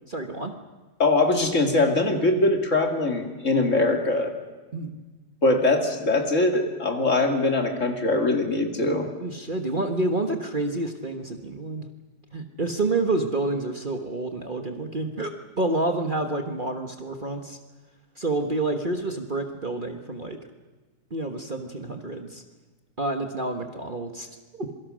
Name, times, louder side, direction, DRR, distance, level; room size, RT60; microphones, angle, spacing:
voice 1, 0.1-0.5 4.7-5.0 9.2-11.9 12.3-17.6 18.2-20.4 21.1-22.4 23.0-24.3 24.5-24.7, right 2 dB, 30° right, 5 dB, 1.5 m, -28 dB
voice 2, 1.0-4.3 5.4-9.1, left 2 dB, 45° left, 4 dB, 2.7 m, -22 dB
26.5 x 23.0 x 6.4 m, 1.3 s
omnidirectional pair, 1.8 m